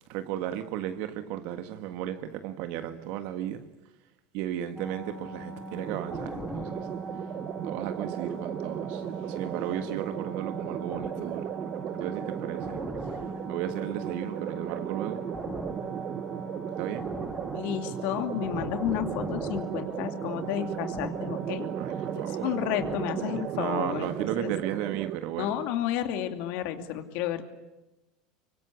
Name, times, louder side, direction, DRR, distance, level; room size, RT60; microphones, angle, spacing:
voice 1, 0.0-3.8 4.3-6.9 7.6-11.6 12.0-12.9 13.4-15.4 16.8-17.2 21.7-22.5 23.5-25.6, right 11 dB, 65° right, 1.6 m, -35 dB
sound 1, 4.8-23.5, right 1 dB, 5° left, 6.2 m, -39 dB
sound 2, 5.7-25.2, right 11 dB, 45° right, 0.9 m, -36 dB
voice 2, 17.5-21.7 22.1-24.5 25.4-27.4, left 11 dB, 65° left, 2.7 m, -31 dB
25.5 x 24.5 x 8.3 m
hypercardioid pair, 100°, 3 cm